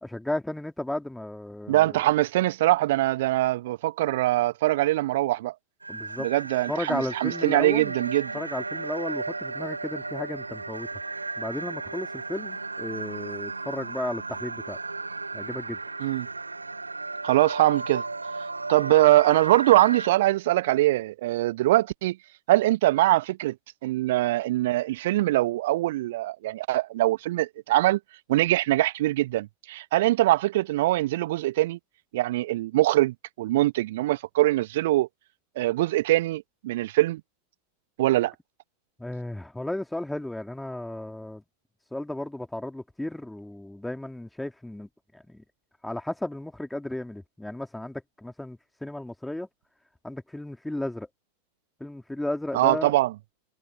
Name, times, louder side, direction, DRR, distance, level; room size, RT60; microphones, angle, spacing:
voice 1, 0.0-2.0 5.9-6.3 6.7-8.0 8.3-11.0 11.4-14.8 15.3-15.8 39.0-41.4 41.9-45.4 45.8-49.5 50.0-51.1 51.8-52.9, left 1 dB, 5° left, 2.8 m, -34 dB
voice 2, 1.7-5.5 6.2-8.3 16.0-16.3 17.2-18.0 18.7-22.2 22.5-23.5 23.8-28.0 28.3-31.8 32.1-35.1 35.6-37.2 38.0-38.3 52.5-53.1, right 16 dB, 55° right, 1.1 m, -23 dB
sound 1, 5.8-20.1, right 3 dB, 80° right, 4.0 m, -35 dB
figure-of-eight pair, 90°, 0 cm